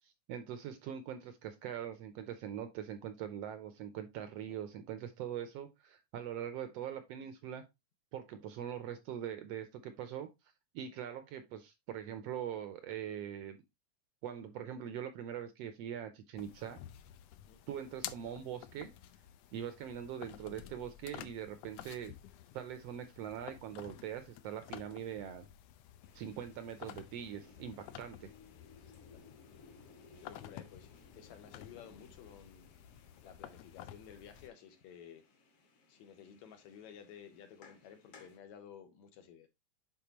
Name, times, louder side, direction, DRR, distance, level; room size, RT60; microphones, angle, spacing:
voice 1, 0.0-7.6 8.1-10.3 10.7-13.6 14.2-16.8 17.7-18.9 19.5-22.1 22.5-25.5 26.1-28.3, right 9 dB, 75° right, 1.5 m, -42 dB
voice 2, 4.2-4.5 17.5-17.6 28.8-29.2 30.2-30.9 31.1-32.7 33.2-35.2 35.9-39.5, left 8 dB, 70° left, 2.3 m, -54 dB
sound 1, 16.4-34.5, left 11 dB, 90° left, 1.4 m, -52 dB
sound 2, 26.0-38.4, left 3 dB, 55° left, 2.3 m, -62 dB
9.6 x 4.0 x 2.9 m
omnidirectional pair, 3.5 m